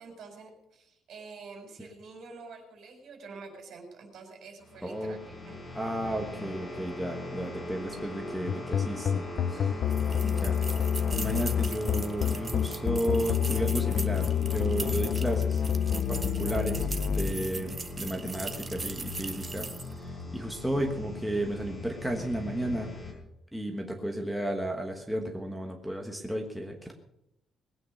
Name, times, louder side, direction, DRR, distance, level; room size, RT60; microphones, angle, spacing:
voice 1, 0.0-5.5 10.2-10.9, right 4 dB, 55° right, 4 dB, 4.6 m, -48 dB
sound 1, 4.6-23.1, left 2 dB, 20° left, 5.0 m, -40 dB
voice 2, 4.8-5.2 5.7-9.8 10.2-10.5 11.2-15.6 16.1-19.7 20.0-22.9 23.5-26.9, right 1 dB, ahead, 1 dB, 1.4 m, -33 dB
sound 2, 8.5-17.3, left 9 dB, 45° left, 0.6 m, -28 dB
sound 3, 9.9-20.0, right 4 dB, 20° right, 1.0 m, -40 dB
20.0 x 9.1 x 6.5 m, 0.83 s
cardioid pair, 175°, 0 cm